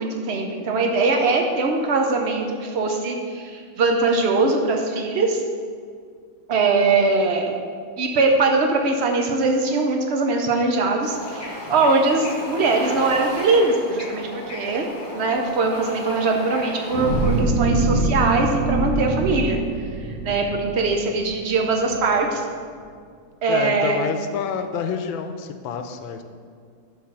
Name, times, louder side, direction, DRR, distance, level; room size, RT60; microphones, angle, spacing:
voice 1, 0.0-5.4 6.5-7.5 8.0-14.9 15.1-19.6 20.2-22.4 23.4-24.0, right 3 dB, 85° right, 2 dB, 0.5 m, -21 dB
Bird / Ocean, 11.0-17.4, left 1 dB, 30° left, 1.2 m, -34 dB
sound 1, 16.9-21.4 21.9-22.0, right 2 dB, 60° right, 1.6 m, -24 dB
voice 2, 23.5-26.2, left 6 dB, 90° left, 7 dB, 1.4 m, -28 dB
11.0 x 3.9 x 6.0 m, 2.1 s
omnidirectional pair, 2.1 m